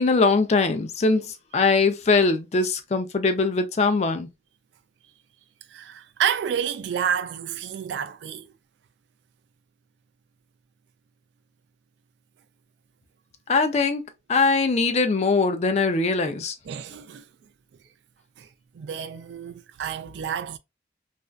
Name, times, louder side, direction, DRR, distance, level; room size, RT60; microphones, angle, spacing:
voice 1, 0.0-4.3 13.5-14.0 14.3-16.5, left 3 dB, 35° left, 0.4 m, -21 dB
voice 2, 5.7-8.5 16.7-17.2 18.4-18.5 18.7-20.6, right 8 dB, 75° right, 0.3 m, -29 dB
2.5 x 2.2 x 2.2 m
head